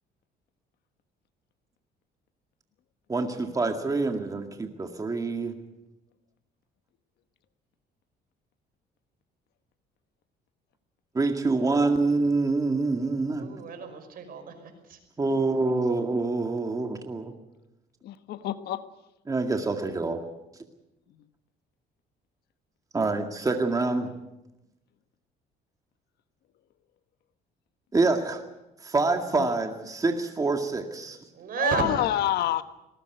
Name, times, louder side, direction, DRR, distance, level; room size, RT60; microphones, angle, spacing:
voice 1, 3.1-5.6 11.1-13.5 15.2-17.3 19.3-20.2 22.9-24.1 27.9-28.4 28.8-31.2, right 3 dB, 20° right, 5 dB, 2.0 m, -26 dB
voice 2, 13.4-14.5 14.9-15.0 31.3-32.1, right 6 dB, 60° right, 7 dB, 5.6 m, -31 dB
voice 3, 18.0-18.9 29.3-29.5 31.6-32.6, left 12 dB, 75° left, 11 dB, 1.3 m, -27 dB
20.0 x 18.0 x 9.3 m, 0.95 s
cardioid pair, 110°, 17 cm